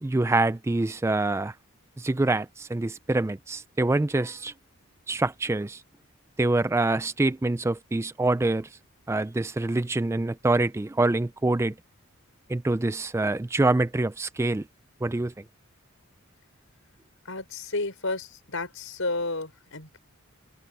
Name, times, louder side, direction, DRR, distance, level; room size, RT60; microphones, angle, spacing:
voice 1, 0.0-1.5 2.0-4.5 5.1-5.8 6.4-8.8 9.1-11.8 12.5-14.7 15.0-15.3, right 2 dB, 10° right, 0.3 m, -25 dB
voice 2, 17.2-20.0, left 2 dB, 65° left, 5.7 m, -32 dB
head